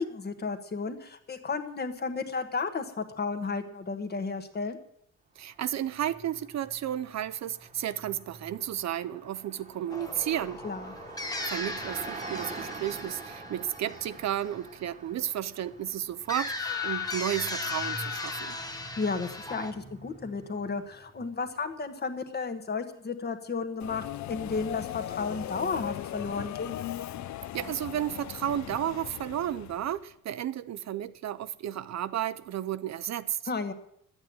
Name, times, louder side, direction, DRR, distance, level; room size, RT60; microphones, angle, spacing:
voice 1, 0.0-4.8 10.6-10.9 18.7-26.8 33.5-33.7, left 4 dB, 30° left, 1.3 m, -33 dB
voice 2, 5.4-10.6 11.5-18.6 27.5-33.4, right 11 dB, 55° right, 0.6 m, -33 dB
Car passing by, 5.5-21.6, right 3 dB, 20° right, 1.3 m, -46 dB
sound 1, 9.9-14.7 16.3-19.7, left 3 dB, 10° left, 1.3 m, -36 dB
Subway metro underground, 23.8-30.0, left 13 dB, 60° left, 0.6 m, -38 dB
12.0 x 8.7 x 9.4 m
wide cardioid pair, 170°, 32 cm